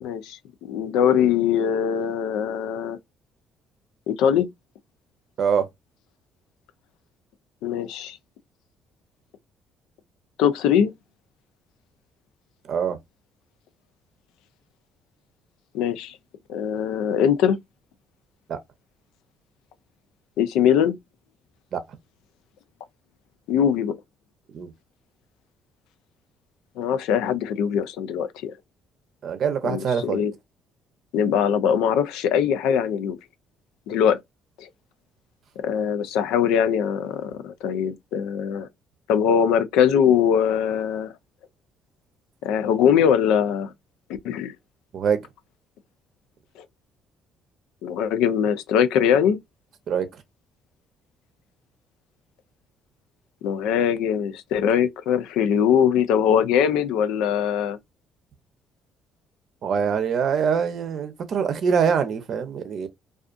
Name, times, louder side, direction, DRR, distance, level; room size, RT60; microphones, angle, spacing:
voice 1, 0.0-3.0 4.1-4.5 7.6-8.2 10.4-10.9 15.7-16.2 16.5-17.6 20.4-21.0 23.5-23.9 26.8-28.5 29.6-30.3 31.1-33.2 33.9-34.2 34.6-34.7 35.6-38.7 39.1-41.1 42.4-43.7 44.2-44.5 47.8-49.4 53.4-57.8, left 8 dB, 85° left, 0.4 m, -22 dB
voice 2, 29.2-30.2 44.9-45.2 49.9-50.1 59.6-62.9, right 7 dB, 60° right, 0.6 m, -24 dB
2.5 x 2.4 x 2.3 m
supercardioid pair, 80°, 0 cm